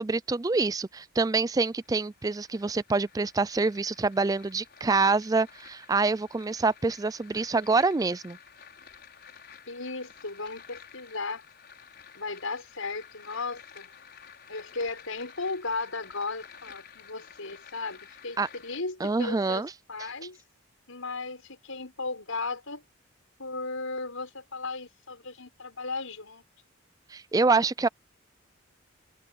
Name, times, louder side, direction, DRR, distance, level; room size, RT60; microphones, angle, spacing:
voice 1, 0.0-8.4 18.4-18.5 19.0-19.7 27.1-27.9, right 3 dB, 15° right, 0.3 m, -26 dB
sound 1, 1.5-18.8, left 7 dB, 50° left, 6.2 m, -52 dB
voice 2, 9.7-11.4 12.1-13.9 14.5-20.4 20.9-22.8 23.4-26.4, left 3 dB, 85° left, 6.3 m, -36 dB
open air
head